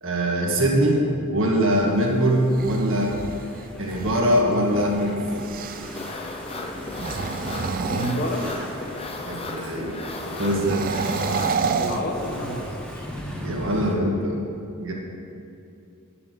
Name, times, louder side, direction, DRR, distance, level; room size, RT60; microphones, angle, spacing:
voice 1, 0.0-3.2 3.8-5.2 9.2-10.0 10.4-10.8 13.4-14.4 14.8-14.9, equal, 60° right, -1 dB, 1.8 m, -22 dB
Engine / Mechanisms, 1.8-13.9, equal, 5° left, 1.0 m, -38 dB
sound 1, 2.3-6.1 6.8-8.9 10.5-12.8, right 5 dB, 40° right, 0.4 m, -30 dB
sound 2, 5.9-11.7, left 2 dB, 25° left, 0.7 m, -35 dB
voice 2, 7.9-8.5 11.8-13.1, equal, 45° left, 1 dB, 1.3 m, -29 dB
9.9 x 6.9 x 6.8 m, 2.6 s
head